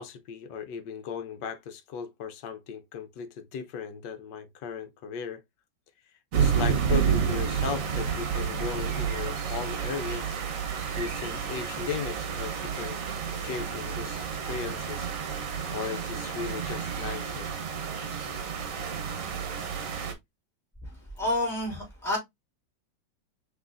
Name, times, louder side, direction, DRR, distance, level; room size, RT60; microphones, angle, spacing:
voice 1, 0.0-5.4 6.4-10.4 10.9-15.1 15.7-17.5, left 6 dB, 75° left, 1.3 m, -37 dB
sound 1, 6.3-20.1, right 7 dB, 55° right, 1.2 m, -30 dB
voice 2, 20.8-22.2, left 1 dB, ahead, 3.3 m, -30 dB
5.8 x 3.2 x 2.5 m
omnidirectional pair, 2.0 m